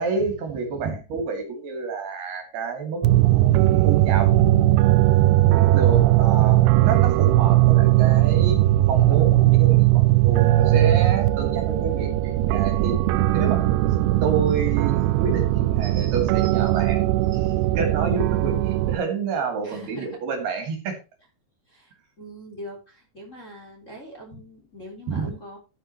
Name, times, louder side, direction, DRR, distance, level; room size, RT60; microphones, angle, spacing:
voice 1, 0.0-3.0 3.4-4.3 5.7-8.6 8.9-13.0 13.3-13.6 14.2-21.0 25.1-25.3, right 5 dB, 60° right, 4 dB, 4.2 m, -29 dB
sound 1, 3.0-19.0, right 15 dB, 85° right, 2.3 m, -19 dB
voice 2, 19.6-20.2 21.7-21.9 22.2-25.6, equal, 15° left, -1 dB, 3.6 m, -42 dB
13.0 x 9.9 x 3.0 m, 0.29 s
omnidirectional pair, 5.3 m